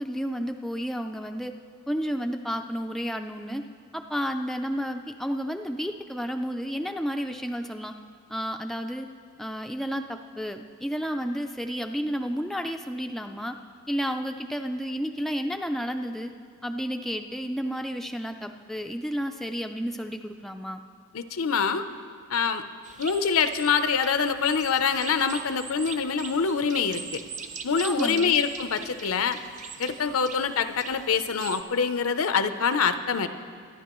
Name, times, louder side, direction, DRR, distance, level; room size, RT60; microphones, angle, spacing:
voice 1, 0.0-1.6 1.9-3.7 3.9-7.9 8.3-9.1 9.4-13.6 13.9-16.3 16.6-20.8 27.8-28.4, equal, ahead, 4 dB, 0.3 m, -31 dB
voice 2, 21.1-21.8 22.3-22.6 23.0-27.2 27.6-29.4 29.8-33.3, left 6 dB, 75° left, 10 dB, 0.6 m, -25 dB
sound 1, 22.8-31.6, right 5 dB, 35° right, 0.6 m, -41 dB
24.0 x 11.0 x 3.0 m, 2.1 s
head